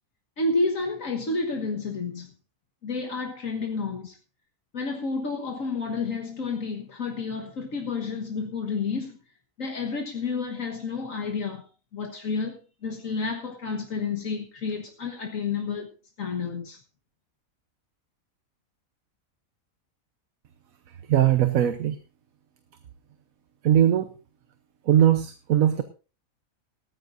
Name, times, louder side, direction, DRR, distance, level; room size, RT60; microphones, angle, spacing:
voice 1, 0.4-2.3 2.8-4.2 4.7-9.2 9.6-11.7 11.9-15.9 16.2-16.8, left 4 dB, 70° left, 1.8 m, -30 dB
voice 2, 21.1-21.9 23.6-24.1 24.9-25.8, right 10 dB, 75° right, 1.3 m, -20 dB
17.5 x 14.0 x 2.6 m
omnidirectional pair, 1.5 m